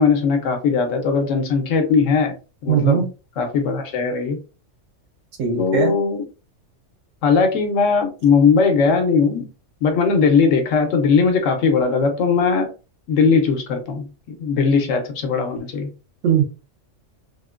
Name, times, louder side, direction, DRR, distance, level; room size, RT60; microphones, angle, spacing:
voice 1, 0.0-2.4 2.6-3.1 3.4-4.4 5.6-6.2 7.2-9.5 9.8-12.7 13.1-15.9, left 5 dB, 85° left, 5 dB, 1.1 m, -19 dB
voice 2, 2.7-3.0 5.4-5.9 16.2-16.4, right 8 dB, 90° right, 3 dB, 1.1 m, -19 dB
3.6 x 2.1 x 2.3 m, 0.32 s
omnidirectional pair, 1.3 m